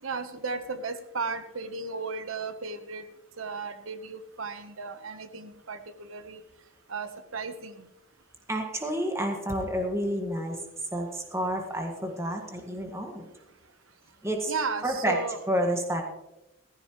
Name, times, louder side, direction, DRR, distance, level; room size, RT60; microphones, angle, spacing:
voice 1, 0.0-3.1 3.4-6.4 6.9-7.9 14.5-15.4, right 4 dB, 80° right, 10 dB, 1.1 m, -35 dB
voice 2, 8.5-10.6 10.9-13.3 14.2-14.5 14.8-15.2 15.5-16.0, equal, 15° right, 2 dB, 1.7 m, -29 dB
15.5 x 15.0 x 3.1 m, 0.94 s
head